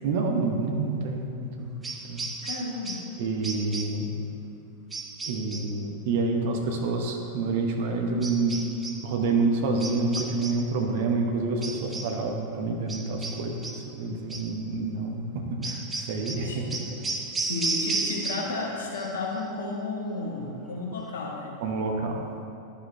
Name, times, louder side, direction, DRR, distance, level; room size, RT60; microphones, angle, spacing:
voice 1, 0.0-1.3 1.6-1.7 2.1-2.2 3.2-4.1 5.3-8.6 9.0-16.6 21.6-22.3, right 3 dB, 50° right, 2 dB, 1.0 m, -28 dB
sound 1, 1.8-3.2 3.4-4.1 4.9-5.8 8.2-9.1 9.8-10.7 11.6-12.2 12.9-13.9 14.3-14.6 15.6-18.7 18.9-19.4, right 3 dB, 15° right, 0.6 m, -34 dB
voice 2, 2.4-3.0 16.4-16.7 17.3-21.6, left 3 dB, 65° left, -1 dB, 1.5 m, -33 dB
11.5 x 5.5 x 4.3 m, 2.7 s
figure-of-eight pair, 90°, 0 cm